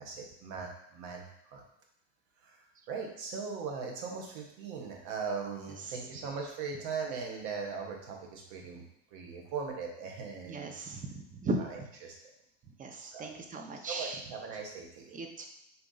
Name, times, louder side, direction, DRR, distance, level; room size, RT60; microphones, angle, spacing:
voice 1, 0.0-1.6 2.4-10.7 11.6-12.2 13.0-13.4 13.7-15.2, right 5 dB, 65° right, 1 dB, 1.2 m, -40 dB
voice 2, 10.5-11.6 12.8-14.2 15.1-15.5, right 2 dB, 25° right, 4 dB, 0.7 m, -37 dB
4.2 x 2.8 x 3.9 m, 0.77 s
hypercardioid pair, 100°, 34 cm